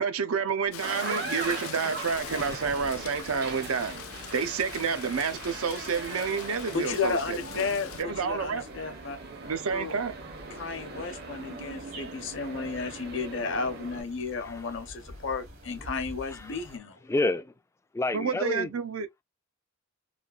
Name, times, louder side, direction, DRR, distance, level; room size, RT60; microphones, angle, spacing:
voice 1, 0.0-4.0 4.3-7.7 8.0-8.7 9.4-10.2 18.1-19.1, right 5 dB, 90° right, 0.6 m, -29 dB
Rain, 0.7-8.0, left 10 dB, 80° left, 0.4 m, -43 dB
sound 1, 0.7-14.0, right 3 dB, 50° right, 0.7 m, -40 dB
sound 2, 2.1-16.8, equal, 65° right, 1.1 m, -49 dB
voice 2, 6.7-9.2 9.7-10.0 10.5-17.0, left 4 dB, 60° left, 0.8 m, -33 dB
voice 3, 16.3-16.6 17.1-17.5 17.9-18.7, left 2 dB, 15° left, 0.3 m, -29 dB
3.2 x 2.4 x 2.4 m
head